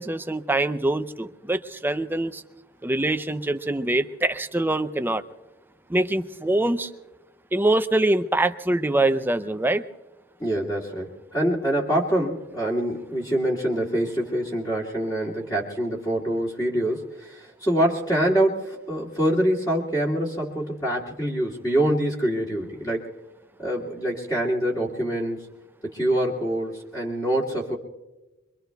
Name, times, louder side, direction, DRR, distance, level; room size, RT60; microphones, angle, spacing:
voice 1, 0.0-2.4 2.8-5.2 5.9-6.9 7.5-9.8, right 2 dB, 10° right, 10 dB, 0.5 m, -24 dB
voice 2, 10.4-23.1 23.6-25.4 25.8-27.8, right 1 dB, 20° left, -4 dB, 2.2 m, -25 dB
26.5 x 23.5 x 2.3 m, 1.1 s
head